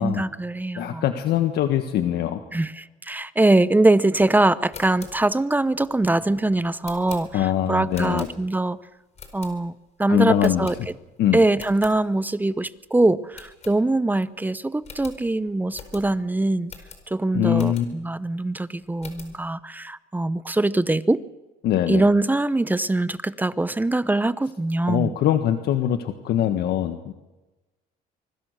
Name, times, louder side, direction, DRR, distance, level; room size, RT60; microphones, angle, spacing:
voice 1, 0.0-1.0 2.5-8.8 9.3-9.7 10.0-10.7 11.3-16.7 17.1-21.2 21.9-25.1, right 2 dB, 10° right, 16 dB, 0.7 m, -22 dB
voice 2, 0.8-2.4 7.3-8.3 10.1-10.7 11.2-11.4 17.3-17.9 21.6-22.0 24.9-27.1, left 11 dB, 75° left, 7 dB, 1.6 m, -22 dB
sound 1, 4.5-8.7 9.1-9.9 10.4-11.2 11.5-12.0 12.4-12.5 12.8-12.9 13.3-14.2 14.5-14.6 14.8-18.1 18.6-19.4, left 5 dB, 40° left, 4.7 m, -44 dB
25.0 x 22.5 x 6.7 m, 1.1 s
cardioid pair, 110°, 17 cm